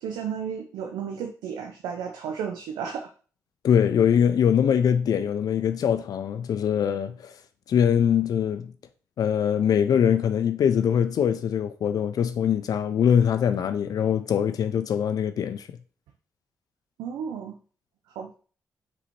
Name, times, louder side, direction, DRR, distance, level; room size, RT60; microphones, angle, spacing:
voice 1, 0.0-3.1 17.0-17.6 18.2-18.3, right 7 dB, 80° right, 0.4 m, -33 dB
voice 2, 3.6-7.4 7.7-8.7 9.2-15.7, left 8 dB, 65° left, 0.4 m, -23 dB
4.1 x 2.7 x 4.4 m
hypercardioid pair, 40°, 7 cm